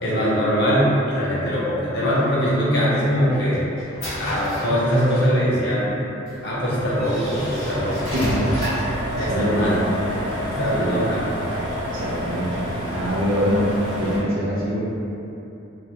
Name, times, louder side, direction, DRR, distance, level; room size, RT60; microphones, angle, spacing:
voice 1, 0.0-3.7 4.2-6.0 6.4-8.2 9.2-9.8 10.5-11.6, equal, 55° left, -8 dB, 0.6 m, -22 dB
sound 1, 2.9-5.4 6.3-6.4 7.0-9.0, equal, 85° left, 0.8 m, -32 dB
sound 2, 6.3-14.2, equal, 25° right, 0.5 m, -29 dB
voice 2, 9.2-9.9 10.7-11.1 11.9-12.6 12.9-13.7 14.0-14.8, equal, 80° right, -6 dB, 0.6 m, -24 dB
2.5 x 2.0 x 2.9 m, 2.9 s
head